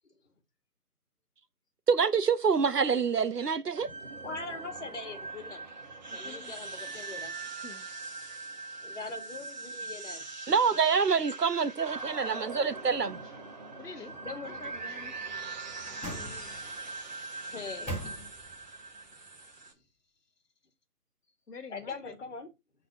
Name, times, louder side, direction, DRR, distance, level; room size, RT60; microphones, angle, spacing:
voice 1, 1.9-3.9 10.5-13.2, right 5 dB, 85° right, 1.1 m, -26 dB
sound 1, 3.7-19.7, right 3 dB, 30° right, 1.1 m, -41 dB
voice 2, 4.2-5.7 6.1-7.4 8.8-10.2 10.9-11.0 14.1-14.6 17.5-17.9 21.7-22.5, left 3 dB, 50° left, 2.0 m, -41 dB
voice 3, 6.1-6.5 7.6-7.8 13.2-13.3 13.8-16.7 19.2-19.3 21.5-22.1, left 4 dB, 90° left, 1.4 m, -49 dB
sound 2, 15.1-16.8 17.4-18.7 19.0-19.1, right 1 dB, 5° left, 1.5 m, -42 dB
6.4 x 4.1 x 5.2 m
figure-of-eight pair, 160°, 46 cm